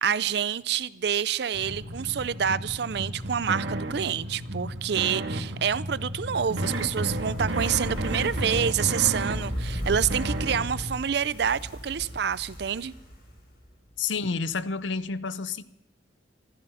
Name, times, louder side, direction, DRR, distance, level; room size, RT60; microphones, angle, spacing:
voice 1, 0.0-12.9, right 8 dB, 60° right, 0.5 m, -27 dB
sound 1, 1.5-11.0, right 1 dB, 75° right, 1.8 m, -32 dB
Fire, 6.3-13.7 14.0-14.1, equal, 55° left, 5.9 m, -36 dB
voice 2, 14.0-15.6, left 5 dB, 80° left, 0.7 m, -29 dB
15.5 x 14.5 x 5.7 m
head